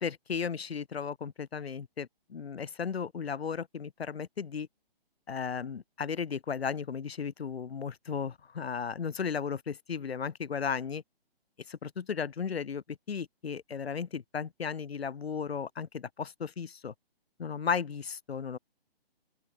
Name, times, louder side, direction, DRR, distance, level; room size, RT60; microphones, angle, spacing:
voice 1, 0.0-4.7 5.3-11.0 11.7-16.9 17.4-18.6, left 6 dB, 85° left, 0.5 m, -35 dB
open air
figure-of-eight pair, 135°, 30 cm